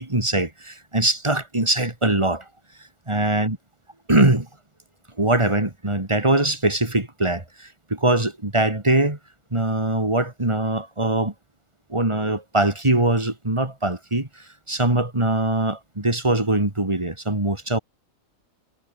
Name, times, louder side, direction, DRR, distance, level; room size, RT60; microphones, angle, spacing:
voice 1, 0.0-2.4 3.1-3.6 4.1-4.5 5.2-7.4 7.9-9.2 9.5-11.3 11.9-14.3 14.7-17.8, right 2 dB, 20° right, 2.9 m, -22 dB
omnidirectional pair, 1.4 m